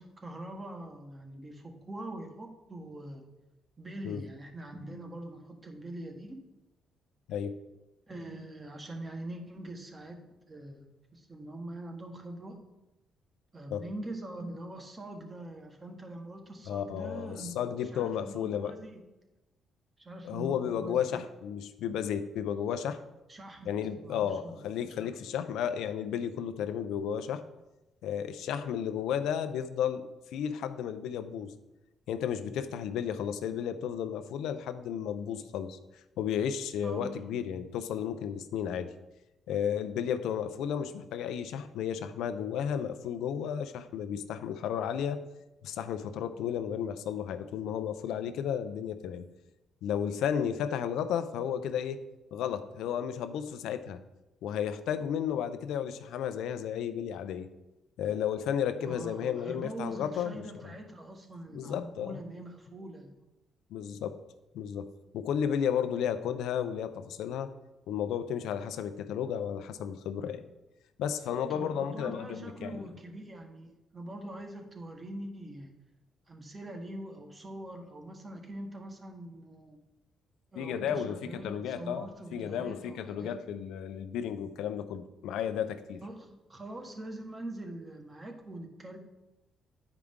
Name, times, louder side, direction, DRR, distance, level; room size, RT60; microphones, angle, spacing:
voice 1, 0.0-3.2 3.8-6.4 8.1-10.2 10.5-10.9 11.1-12.6 13.5-17.5 17.9-19.0 20.0-21.2 23.3-25.4 36.8-37.1 58.8-63.2 71.5-75.7 76.3-79.8 80.5-83.4 86.0-89.0, right 1 dB, 25° right, 3 dB, 1.3 m, -43 dB
voice 2, 16.7-18.8 20.2-23.0 23.7-27.4 28.0-30.0 30.3-31.5 32.1-35.8 36.2-38.9 39.5-45.2 45.6-49.2 49.8-52.0 52.3-54.0 54.4-57.5 58.0-60.7 61.5-62.2 63.7-64.2 64.5-67.5 67.9-70.4 71.0-72.8 80.6-86.0, left 8 dB, 85° left, 11 dB, 0.5 m, -33 dB
9.2 x 4.9 x 3.6 m, 0.98 s
cardioid pair, 90°, 0 cm